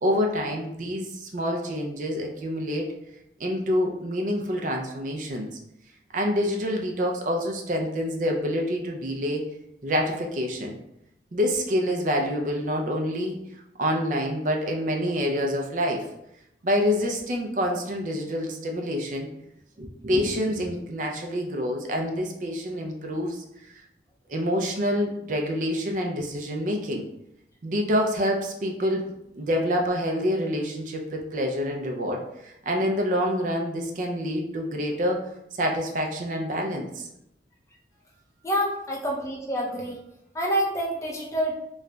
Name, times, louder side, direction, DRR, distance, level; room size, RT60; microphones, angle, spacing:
voice 1, 0.0-2.8 3.4-5.6 6.1-9.4 9.8-10.8 11.3-13.4 13.8-16.1 16.6-19.3 19.8-23.4 24.3-27.0 27.6-37.1, equal, 45° right, 1 dB, 0.4 m, -27 dB
voice 2, 38.4-40.0 40.3-41.5, equal, 15° left, -2 dB, 0.5 m, -27 dB
3.7 x 3.1 x 2.2 m, 0.81 s
head